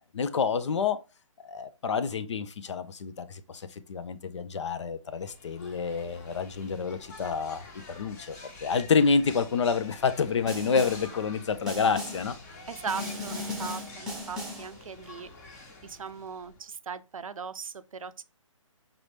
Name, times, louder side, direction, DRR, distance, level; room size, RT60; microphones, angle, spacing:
voice 1, 0.1-1.0 1.4-7.6 7.9-12.3, left 5 dB, 60° left, 0.6 m, -28 dB
sound 1, 5.1-16.7, left 3 dB, 30° left, 1.1 m, -48 dB
Snare drum, 10.5-11.2 11.7-12.4 12.9-14.8, left 1 dB, ahead, 1.0 m, -37 dB
voice 2, 12.7-15.3 15.5-18.2, right 6 dB, 85° right, 0.5 m, -39 dB
5.3 x 2.9 x 3.2 m
hypercardioid pair, 150°, 17 cm